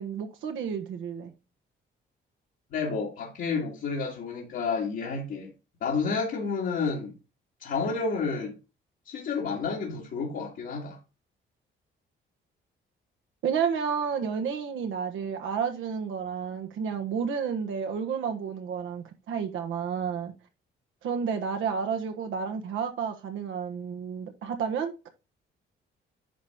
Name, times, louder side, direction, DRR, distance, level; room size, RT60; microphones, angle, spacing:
voice 1, 0.0-1.3 13.4-20.3 21.0-25.1, right 6 dB, 80° right, 1.5 m, -31 dB
voice 2, 2.7-5.5 5.8-7.2 7.6-8.5 9.1-11.0, left 4 dB, 70° left, 2.2 m, -30 dB
10.0 x 3.6 x 4.3 m
cardioid pair, 90°, 20 cm